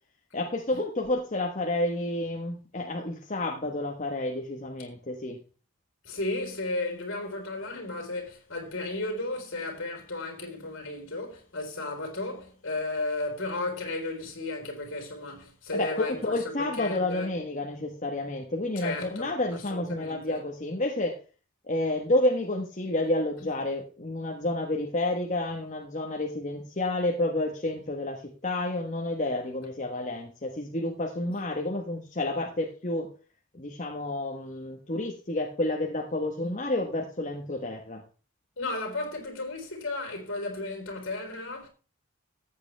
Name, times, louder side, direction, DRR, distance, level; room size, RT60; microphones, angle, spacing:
voice 1, 0.3-5.4 15.7-21.2 21.7-33.1 33.5-38.0, left 1 dB, 35° left, 1.2 m, -30 dB
voice 2, 6.0-17.3 18.8-20.4 36.4-36.5 38.6-41.7, left 2 dB, 55° left, 3.9 m, -34 dB
14.0 x 8.7 x 3.3 m
head